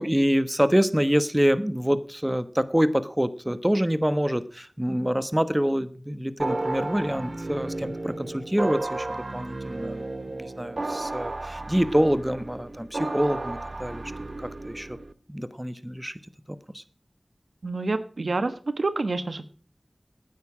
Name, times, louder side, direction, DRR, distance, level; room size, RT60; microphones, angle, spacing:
voice 1, 0.0-15.0 15.3-16.2 16.5-16.8, equal, 15° right, 13 dB, 1.2 m, -26 dB
sound 1, 6.4-15.1, right 2 dB, 60° right, 1.1 m, -33 dB
voice 2, 17.6-19.4, right 3 dB, 90° right, 11 dB, 1.3 m, -28 dB
17.0 x 9.5 x 4.9 m, 0.41 s
wide cardioid pair, 45°, 0 cm